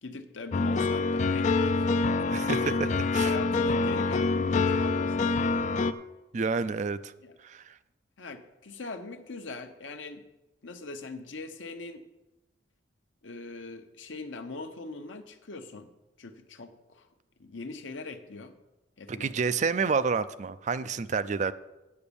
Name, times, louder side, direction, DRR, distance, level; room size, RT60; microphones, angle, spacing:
voice 1, 0.0-1.9 2.5-2.8 3.2-5.3 7.2-7.3 8.2-10.2 10.6-12.0 13.2-15.9 16.2-17.1 17.4-18.6 19.0-19.6 20.8-20.9, left 3 dB, 80° left, 7 dB, 0.9 m, -41 dB
sound 1, 0.5-5.9, left 3 dB, 40° left, 0.4 m, -26 dB
voice 2, 2.3-3.3 6.3-7.1 7.4-7.7 19.1-21.5, right 5 dB, 40° right, 13 dB, 0.4 m, -29 dB
8.6 x 7.1 x 6.9 m, 1.0 s
head